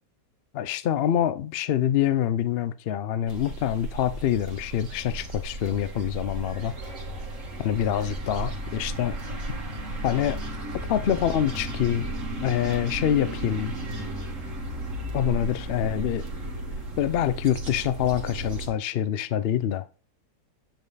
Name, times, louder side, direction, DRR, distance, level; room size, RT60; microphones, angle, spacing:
voice 1, 0.5-6.7 7.6-9.2 10.0-10.4 10.9-12.1 12.4-13.7 15.1-16.2 17.0-19.8, left 10 dB, 75° left, 0.5 m, -25 dB
sound 1, 3.3-18.7, right 1 dB, 50° right, 2.0 m, -34 dB
8.9 x 5.4 x 4.0 m
omnidirectional pair, 1.7 m